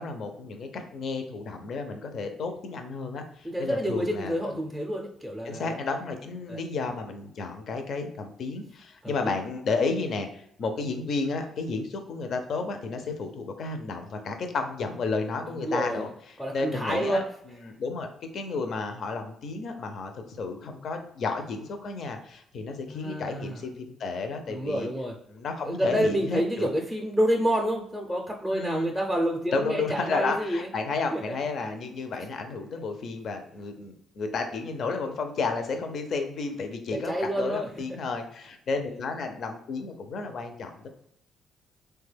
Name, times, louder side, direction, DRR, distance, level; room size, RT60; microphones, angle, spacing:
voice 1, 0.0-4.3 5.4-16.1 16.5-17.2 17.6-18.1 18.3-24.9 25.3-26.7 28.5-28.9 29.5-40.9, left 4 dB, 60° left, 6 dB, 0.5 m, -32 dB
voice 2, 3.4-5.8 6.5-6.6 9.0-9.3 15.5-16.1 16.4-17.2 22.9-23.6 24.5-25.1 25.6-30.7 31.1-31.2 36.9-37.7, equal, ahead, 0 dB, 0.5 m, -28 dB
3.2 x 2.2 x 3.3 m, 0.72 s
cardioid pair, 90°, 0 cm